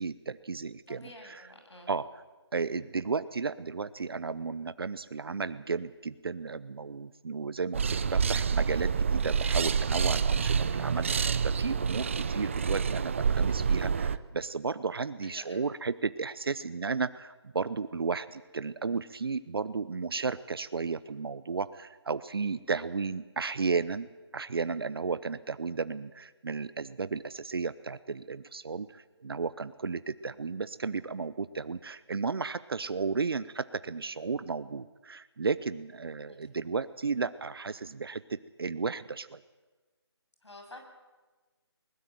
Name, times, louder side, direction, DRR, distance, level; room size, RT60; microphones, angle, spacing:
voice 1, 0.0-1.5 1.9-2.2 2.5-39.4, right 4 dB, 60° right, 14 dB, 0.8 m, -34 dB
voice 2, 0.9-1.9 15.2-15.6 36.3-36.4 40.4-40.8, left 1 dB, 85° left, 3 dB, 7.6 m, -49 dB
sound 1, 7.7-14.2, right 6 dB, 30° right, 0.6 m, -28 dB
21.5 x 20.5 x 7.8 m, 1.3 s
figure-of-eight pair, 165°, 14 cm